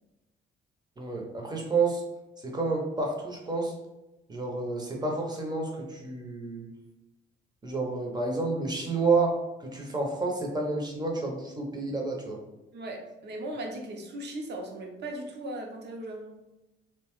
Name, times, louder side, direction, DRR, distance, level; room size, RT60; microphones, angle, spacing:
voice 1, 1.0-2.0 2.4-3.7 4.3-6.7 7.6-12.4, right 3 dB, 20° right, 0 dB, 0.7 m, -29 dB
voice 2, 12.7-16.3, right 1 dB, 60° right, 1 dB, 0.7 m, -38 dB
2.7 x 2.2 x 3.0 m, 1.0 s
cardioid pair, 90°, 20 cm